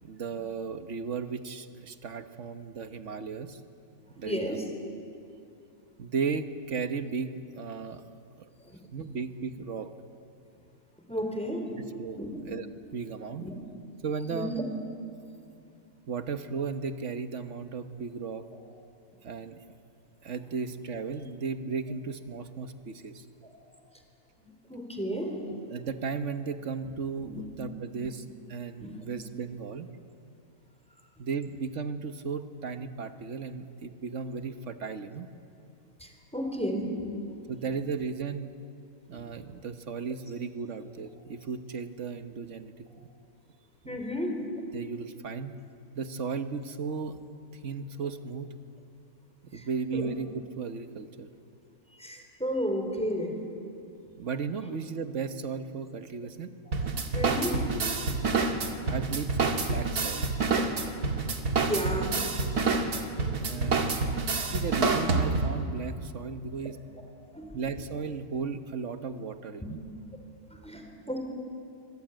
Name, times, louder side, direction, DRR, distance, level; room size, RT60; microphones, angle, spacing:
voice 1, 0.0-3.6 4.2-4.7 6.0-8.0 8.4-8.5 8.9-9.9 12.0-12.7 12.9-13.5 14.0-14.7 16.1-18.5 19.2-19.6 20.2-23.2 25.7-29.9 31.2-35.3 37.5-38.6 39.1-43.1 43.8-44.0 44.7-45.6 45.9-47.2 47.6-48.5 49.4-51.3 54.2-56.5 58.9-60.3 63.5-64.0 64.3-66.9 67.5-69.8, right 5 dB, 55° right, 8 dB, 1.5 m, -35 dB
voice 2, 4.2-4.6 8.7-8.8 11.1-11.6 12.2-12.3 13.3-13.6 14.3-14.6 24.4-25.3 27.3-27.4 28.8-29.0 36.0-37.3 39.1-39.2 43.9-44.3 49.5-49.6 49.9-50.1 52.0-53.3 56.7-56.8 57.1-57.7 60.9-62.3 63.1-63.4 64.4-64.5 66.6-66.7 67.3-67.5 70.4-71.2, equal, 5° left, 3 dB, 3.8 m, -33 dB
sound 1, 56.7-65.6, right 4 dB, 80° right, 2.4 m, -27 dB
25.5 x 22.0 x 9.2 m, 2.6 s
omnidirectional pair, 1.6 m